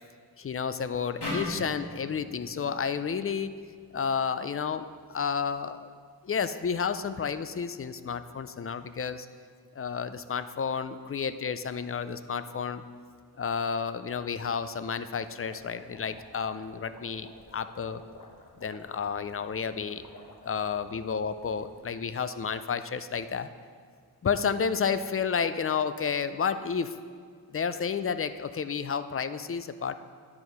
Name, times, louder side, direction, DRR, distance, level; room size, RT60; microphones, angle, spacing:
voice 1, 0.4-3.5 3.9-5.9 6.2-9.3 9.8-12.8 13.4-18.0 18.6-20.1 20.4-23.5 24.2-26.9 27.5-30.0, left 6 dB, 35° left, 12 dB, 0.4 m, -31 dB
sound 1, 1.2-4.4, left 1 dB, 85° left, 2.1 m, -39 dB
sound 2, 15.1-21.9, left 2 dB, 55° left, 1.1 m, -52 dB
10.5 x 4.7 x 5.3 m, 2.1 s
wide cardioid pair, 75°, 39 cm